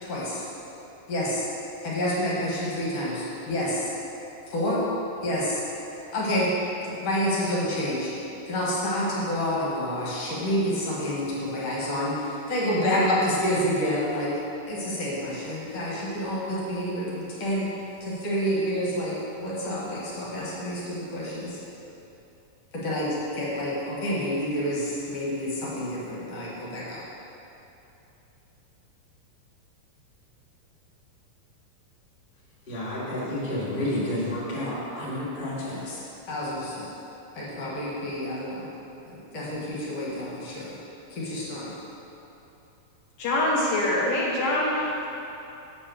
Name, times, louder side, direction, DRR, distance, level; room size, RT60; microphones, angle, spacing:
voice 1, 0.0-0.5 1.1-1.5 1.8-3.9 4.5-4.8 5.2-5.6 6.1-6.5 6.8-8.1 8.5-14.4 14.7-17.7 18.0-21.6 22.7-27.0 36.3-36.9 37.3-38.7 39.1-40.8 41.1-41.7, equal, 55° left, -6 dB, 2.2 m, -28 dB
voice 2, 32.7-36.0 37.5-37.6, left 1 dB, 20° left, -9 dB, 1.4 m, -30 dB
voice 3, 43.2-45.1, left 1 dB, 85° left, -5 dB, 1.3 m, -24 dB
7.3 x 5.4 x 6.3 m, 2.9 s
omnidirectional pair, 3.9 m